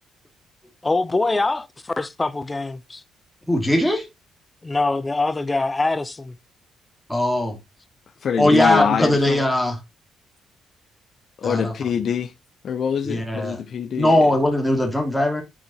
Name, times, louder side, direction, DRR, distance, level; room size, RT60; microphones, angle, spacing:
voice 1, 0.8-1.7 2.0-3.0 4.6-6.3 8.4-9.2, left 3 dB, 20° left, 0.6 m, -23 dB
voice 2, 3.5-4.1 7.1-7.6 8.4-9.8 11.4-11.7 13.1-13.6 14.0-15.4, left 1 dB, ahead, 2.6 m, -20 dB
voice 3, 8.2-9.4 11.4-12.3 12.6-14.3, left 7 dB, 55° left, 0.7 m, -25 dB
9.8 x 4.5 x 3.0 m
cardioid pair, 90°, 0 cm